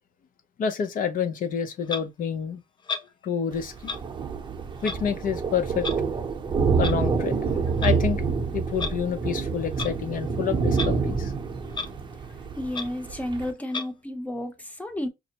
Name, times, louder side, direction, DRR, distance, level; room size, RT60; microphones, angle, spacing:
voice 1, 0.6-2.6 3.2-3.9 4.8-5.9 6.8-11.3, left 7 dB, 55° left, 0.8 m, -28 dB
Clock, 1.9-2.0 2.9-3.1 3.8-4.0 4.8-5.0 5.8-6.0 6.8-7.0 7.7-7.9 8.7-8.9 9.7-9.9 10.7-10.9 11.2-11.3 11.7-11.9 12.3-12.4 12.7-12.9 13.7-13.9, left 4 dB, 25° left, 0.5 m, -32 dB
Thunder, 3.5-13.5, right 5 dB, 25° right, 0.8 m, -27 dB
voice 2, 12.6-15.1, left 1 dB, 10° left, 0.9 m, -32 dB
5.5 x 2.1 x 2.9 m
cardioid pair, 110°, 17 cm